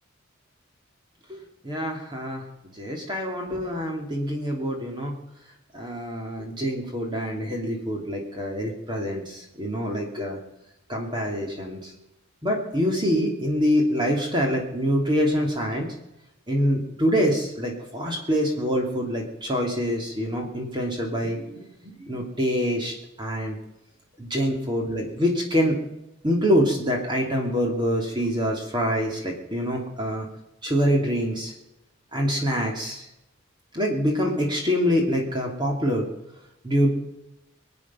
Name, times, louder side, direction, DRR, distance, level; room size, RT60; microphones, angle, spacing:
voice 1, 1.3-2.4 2.7-5.1 5.7-10.4 10.9-11.9 12.4-15.9 16.5-23.6 24.2-25.8 26.2-30.3 30.6-31.5 32.1-33.1 33.7-36.1 36.6-36.9, equal, 20° right, 0 dB, 2.6 m, -25 dB
25.0 x 8.6 x 5.5 m, 0.89 s
head